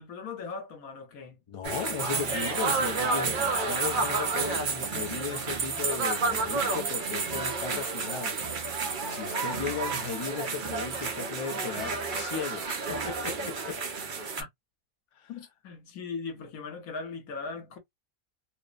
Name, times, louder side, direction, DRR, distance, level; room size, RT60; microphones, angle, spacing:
voice 1, 0.0-1.4 14.4-14.5 15.3-17.8, left 4 dB, 80° left, 1.4 m, -39 dB
voice 2, 1.5-8.4 8.7-13.8 15.1-15.3, left 6 dB, 55° left, 0.3 m, -37 dB
sound 1, 1.6-14.4, right 4 dB, 55° right, 0.6 m, -30 dB
2.9 x 2.0 x 2.3 m
omnidirectional pair, 1.5 m